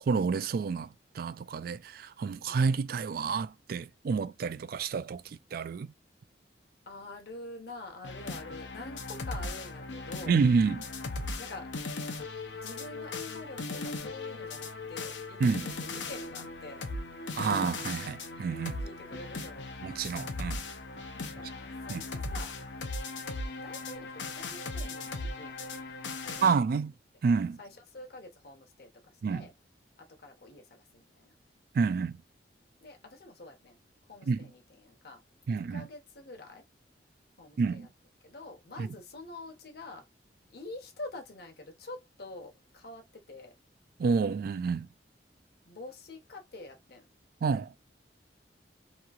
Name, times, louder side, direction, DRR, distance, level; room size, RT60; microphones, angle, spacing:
voice 1, 0.1-5.9 10.3-10.8 15.4-15.7 17.4-18.8 19.8-20.6 21.9-22.0 26.4-26.9 27.2-27.6 29.2-29.5 31.7-32.2 34.3-34.4 35.5-35.9 37.6-37.9 38.8-38.9 44.0-44.9 47.4-47.8, right 5 dB, 55° right, 0.3 m, -29 dB
voice 2, 6.9-10.4 11.4-11.7 12.6-16.8 18.8-19.7 21.1-22.6 23.6-25.6 26.2-26.5 27.6-28.9 29.3-29.5 30.0-31.3 32.8-33.8 34.1-35.2 35.5-36.6 37.4-37.9 38.2-40.0 40.5-43.5 45.7-47.1, left 2 dB, 60° left, 1.0 m, -46 dB
sound 1, 8.0-26.6, left 3 dB, 85° left, 0.7 m, -38 dB
3.0 x 2.7 x 2.4 m
head